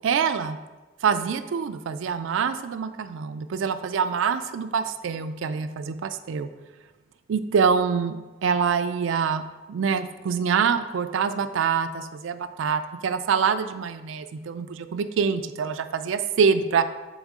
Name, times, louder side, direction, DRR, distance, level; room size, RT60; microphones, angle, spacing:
voice 1, 0.0-0.6 1.0-6.5 7.3-9.4 9.7-16.8, right 6 dB, 80° right, 10 dB, 0.4 m, -25 dB
7.2 x 3.5 x 3.6 m, 1.2 s
head